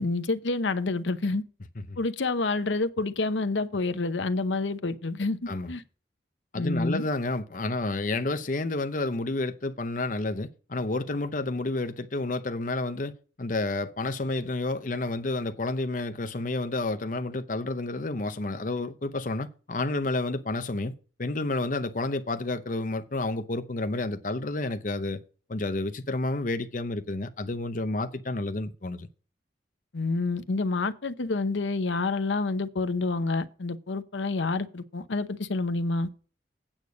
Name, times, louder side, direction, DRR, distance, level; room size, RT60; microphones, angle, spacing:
voice 1, 0.0-1.4 2.0-5.8 6.5-7.0 29.9-36.1, left 3 dB, 85° left, 0.8 m, -28 dB
voice 2, 6.5-13.1 13.4-25.2 25.5-29.1, left 2 dB, 45° left, 0.7 m, -30 dB
8.9 x 6.5 x 5.2 m
head